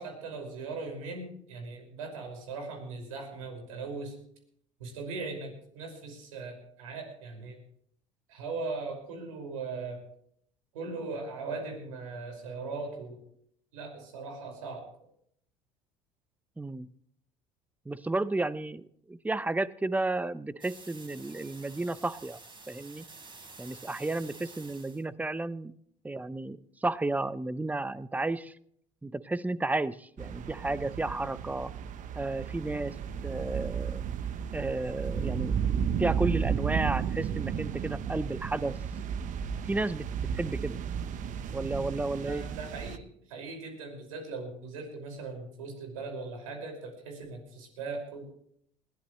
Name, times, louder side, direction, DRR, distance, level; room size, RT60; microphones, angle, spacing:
voice 1, 0.0-4.2 4.8-7.6 8.3-10.0 10.7-13.2 13.7-14.9 42.2-48.2, right 3 dB, 80° right, 2 dB, 5.7 m, -39 dB
voice 2, 16.6-16.9 17.9-22.4 22.7-23.0 23.6-25.7 26.0-28.5 29.0-31.7 32.1-33.0 33.2-34.0 34.5-35.6 36.0-38.8 39.6-40.8 41.5-42.4, right 2 dB, 10° right, 16 dB, 0.8 m, -32 dB
sound 1, 20.6-25.0, right 3 dB, 30° right, 3.8 m, -50 dB
sound 2, 30.2-43.0, right 7 dB, 50° right, 1.1 m, -33 dB
21.0 x 16.0 x 3.2 m, 0.67 s
hypercardioid pair, 75°, 17 cm